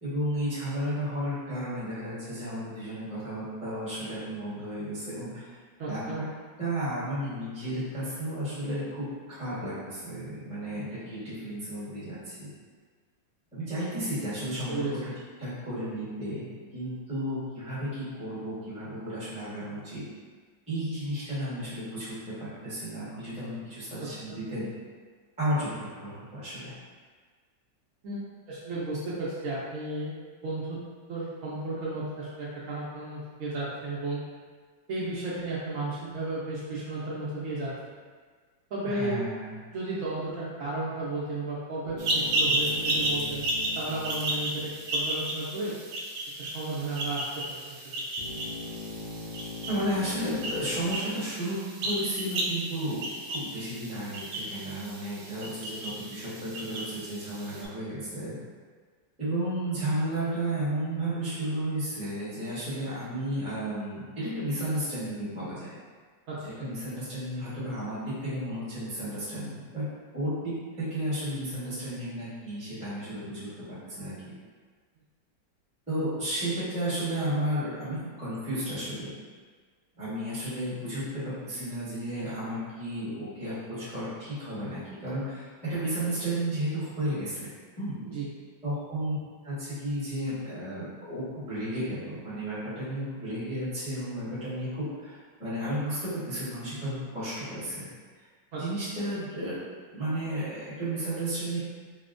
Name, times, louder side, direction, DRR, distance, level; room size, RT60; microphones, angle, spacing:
voice 1, 0.0-5.5 5.8-6.2 6.6-12.5 13.5-15.0 15.4-20.0 20.7-24.7 25.4-26.7 38.8-39.5 49.7-58.3 59.2-65.7 66.4-69.9 70.1-74.3 75.9-79.1 80.0-87.5 87.8-88.0 88.6-89.2 89.4-97.8 98.6-99.5 99.9-101.6, right 1 dB, 5° right, -12 dB, 0.9 m, -33 dB
voice 2, 5.8-6.2 14.0-14.1 14.7-14.9 24.0-24.4 28.0-28.2 28.5-30.8 31.1-34.2 34.9-38.0 38.7-39.2 39.7-43.5 43.8-45.7 46.4-47.8 66.3-66.6 88.1-88.3 98.5-98.6, right 2 dB, 90° right, -8 dB, 0.7 m, -34 dB
sound 1, 41.8-45.2 48.2-51.0, left 2 dB, 80° left, 1.4 m, -41 dB
sound 2, 42.0-57.7, right 1 dB, 70° right, 1.1 m, -33 dB
4.1 x 2.1 x 2.5 m, 1.5 s
omnidirectional pair, 2.0 m